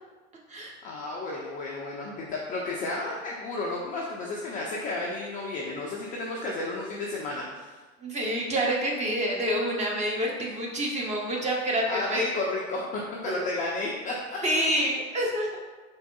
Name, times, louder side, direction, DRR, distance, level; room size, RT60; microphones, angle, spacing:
voice 1, 0.8-7.8 11.9-14.4, left 2 dB, 20° left, -3 dB, 0.3 m, -32 dB
voice 2, 8.0-12.3 13.3-13.4 14.4-15.5, equal, 15° right, -2 dB, 0.8 m, -27 dB
4.5 x 3.4 x 2.3 m, 1.3 s
hypercardioid pair, 90°, 41 cm